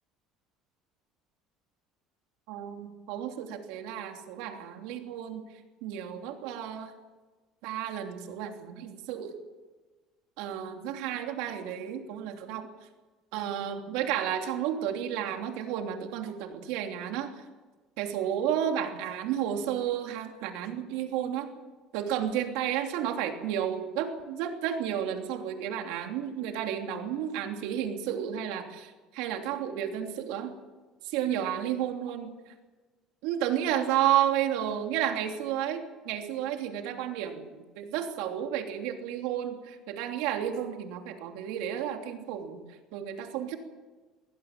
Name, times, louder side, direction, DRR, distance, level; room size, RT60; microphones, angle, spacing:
voice 1, 2.5-5.4 5.8-6.9 7.6-9.4 10.4-12.9 13.3-17.4 18.0-21.5 21.9-30.6 31.0-32.5 33.2-43.6, right 10 dB, 85° right, 4 dB, 3.1 m, -32 dB
23.5 x 16.5 x 7.5 m, 1.3 s
cardioid pair, 125°, 0 cm